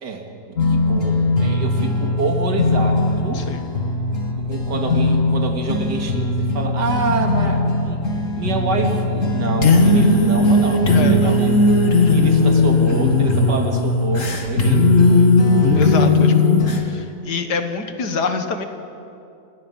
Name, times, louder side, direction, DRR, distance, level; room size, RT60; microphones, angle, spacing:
voice 1, 0.0-3.5 4.4-8.0 8.4-11.6 12.1-15.0, right 3 dB, 85° right, 3 dB, 2.6 m, -26 dB
sound 1, 0.6-16.8, left 2 dB, 50° left, 2.1 m, -17 dB
voice 2, 10.9-11.4 15.8-16.6 16.8-18.7, left 5 dB, 75° left, 7 dB, 2.0 m, -26 dB
28.5 x 18.5 x 5.5 m, 2.6 s
omnidirectional pair, 1.8 m